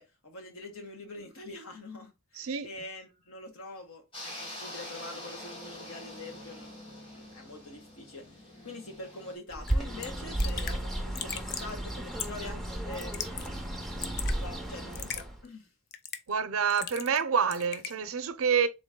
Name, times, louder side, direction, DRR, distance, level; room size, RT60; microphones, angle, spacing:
voice 1, 0.0-6.8 7.1-13.6 14.3-15.7, left 2 dB, 80° left, 1.3 m, -45 dB
voice 2, 2.4-2.7 16.3-18.7, right 6 dB, 80° right, 0.6 m, -27 dB
sound 1, 4.1-9.4, left 1 dB, 25° left, 1.6 m, -45 dB
Bird, 9.5-15.4, right 1 dB, ahead, 0.6 m, -34 dB
Raindrop / Drip, 9.7-9.8 10.0-10.1 10.4-10.8 11.2-11.7 12.2-12.5 12.9-13.5 13.8-14.4 14.9-15.2 15.9-16.3 16.7-17.2 17.5-17.9, left 8 dB, 50° left, 0.5 m, -38 dB
3.9 x 3.0 x 3.6 m
head